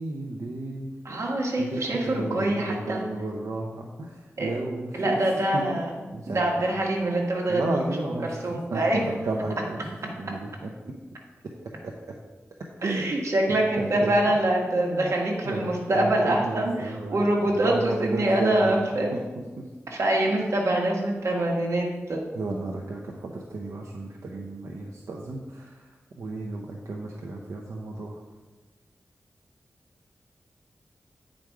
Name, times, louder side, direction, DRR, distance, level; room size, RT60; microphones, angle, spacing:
voice 1, 0.0-0.9 1.6-4.1 4.4-5.2 5.5-5.6 6.1-6.5 7.5-9.8 10.0-10.5 10.8-10.9 12.8-13.1 13.8-14.1 14.8-15.1 15.5-15.7 15.9-17.2 17.6-18.7 19.1-19.2 22.3-25.7 26.2-28.1, right 2 dB, 80° right, -1 dB, 0.8 m, -33 dB
voice 2, 1.0-3.1 4.4-4.6 4.9-5.9 6.3-9.0 12.8-19.1 19.9-22.2, right 1 dB, 65° right, -1 dB, 1.8 m, -25 dB
9.0 x 5.2 x 4.7 m, 1.2 s
wide cardioid pair, 80°, 5 cm